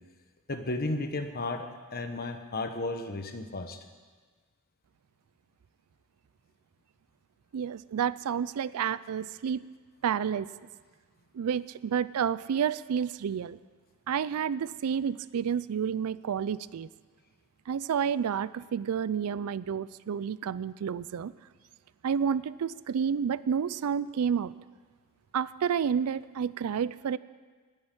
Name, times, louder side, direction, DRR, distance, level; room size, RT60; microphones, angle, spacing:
voice 1, 0.5-3.8, left 2 dB, 45° left, 7 dB, 1.1 m, -34 dB
voice 2, 7.5-9.6 10.0-10.5 11.3-13.6 14.1-16.9 17.7-21.3 22.0-24.5 25.3-27.2, right 7 dB, 85° right, 18 dB, 0.4 m, -30 dB
10.5 x 9.7 x 9.9 m, 1.5 s
head